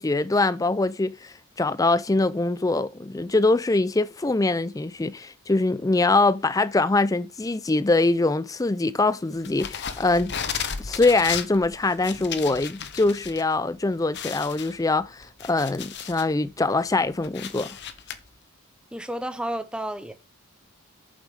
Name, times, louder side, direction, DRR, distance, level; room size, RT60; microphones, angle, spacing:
voice 1, 0.0-10.3 10.8-17.8, left 2 dB, 15° left, 0.4 m, -23 dB
sound 1, 9.4-13.4 13.7-13.8 14.1-16.3 16.8-18.2, left 7 dB, 50° left, 0.9 m, -34 dB
voice 2, 18.9-20.1, right 1 dB, 5° right, 0.8 m, -31 dB
8.8 x 7.4 x 3.6 m
head